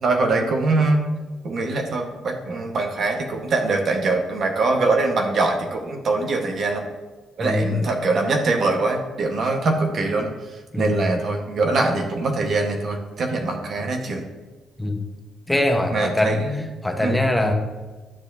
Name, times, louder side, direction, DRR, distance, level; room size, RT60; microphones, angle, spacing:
voice 1, 0.0-1.0 1.4-6.8 7.4-10.3 10.8-14.2 15.9-16.7 17.0-17.2, right 3 dB, 55° right, 2 dB, 1.4 m, -23 dB
voice 2, 7.4-7.8 10.7-11.1 14.8-15.0 15.5-16.4 16.8-17.5, left 1 dB, 5° left, 3 dB, 1.1 m, -22 dB
10.0 x 7.0 x 2.8 m, 1.3 s
cardioid pair, 90°, 0 cm